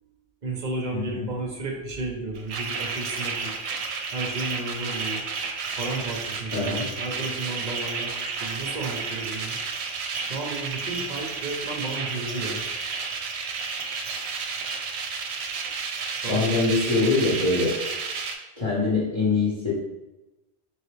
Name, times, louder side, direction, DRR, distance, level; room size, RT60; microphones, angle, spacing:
voice 1, 0.4-3.6 4.1-5.3 5.8-9.6 10.3-12.6 16.2-17.4, right 2 dB, 45° right, 0 dB, 0.7 m, -33 dB
voice 2, 0.9-1.3 6.5-6.8 16.3-17.8 18.6-19.7, left 3 dB, 30° left, -8 dB, 1.0 m, -24 dB
sound 1, 2.3-18.4, right 5 dB, 75° right, 0.8 m, -31 dB
3.8 x 3.1 x 3.2 m, 1.0 s
omnidirectional pair, 1.1 m